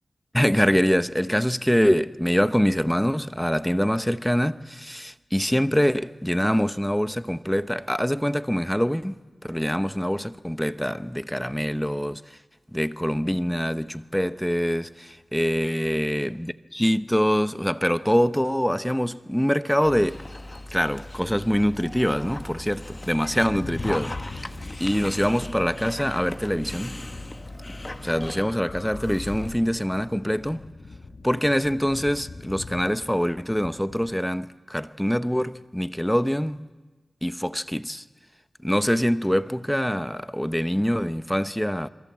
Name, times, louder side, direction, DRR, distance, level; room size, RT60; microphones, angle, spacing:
voice 1, 0.3-12.2 12.7-20.2 20.7-24.5 24.8-26.9 28.0-30.6 31.2-36.7 37.2-38.0 38.6-41.9, equal, 5° left, 0.9 m, -24 dB
Dog, 19.8-28.4, left 1 dB, 25° left, 1.2 m, -38 dB
sound 1, 22.0-34.1, left 3 dB, 65° left, 1.5 m, -42 dB
sound 2, 28.2-29.8, left 2 dB, 40° left, 4.9 m, -39 dB
28.0 x 22.5 x 7.5 m
wide cardioid pair, 65°, 0 cm